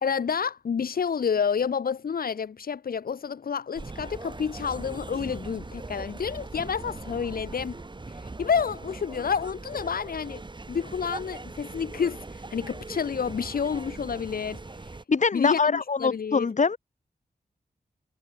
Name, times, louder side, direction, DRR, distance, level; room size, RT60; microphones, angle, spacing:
voice 1, 0.0-7.7 8.1-10.4 10.7-14.9 15.3-16.5, left 6 dB, 75° left, 1.5 m, -29 dB
sound 1, 3.7-15.0, right 3 dB, 30° right, 3.6 m, -40 dB
voice 2, 15.1-16.8, left 4 dB, 55° left, 2.8 m, -23 dB
wide cardioid pair, 95°, 15 cm